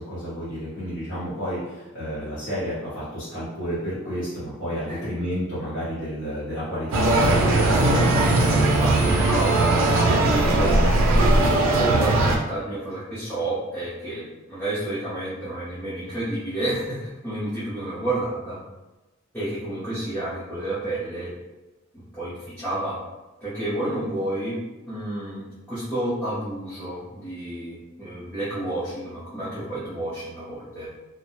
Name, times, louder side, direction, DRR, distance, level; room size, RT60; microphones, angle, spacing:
voice 1, 0.0-8.3, equal, 60° left, -11 dB, 0.9 m, -31 dB
sound 1, 6.9-12.4, right 2 dB, 80° right, 0.4 m, -19 dB
voice 2, 8.4-14.2 14.5-18.6 19.3-21.3 21.9-23.0 23.4-24.6 24.9-30.9, right 1 dB, 10° left, -12 dB, 0.6 m, -30 dB
2.3 x 2.1 x 2.8 m, 1.1 s
head